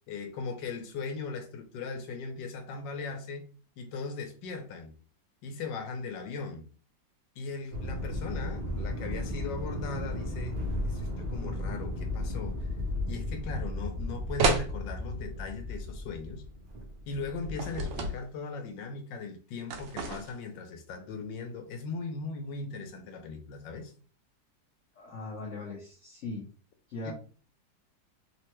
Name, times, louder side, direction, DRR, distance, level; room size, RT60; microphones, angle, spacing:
voice 1, 0.1-3.4 3.8-4.9 5.4-6.6 7.4-10.6 10.9-12.6 13.1-16.4 17.1-23.9 27.0-27.1, left 4 dB, 80° left, 1.3 m, -38 dB
sound 1, 7.7-18.0, left 1 dB, 50° right, 0.6 m, -35 dB
sound 2, 14.4-14.7 17.6-18.2 19.7-20.4, right 3 dB, 80° right, 1.3 m, -29 dB
voice 2, 24.9-26.5 26.9-27.1, left 3 dB, 65° left, 0.7 m, -39 dB
3.5 x 2.1 x 2.9 m
omnidirectional pair, 2.0 m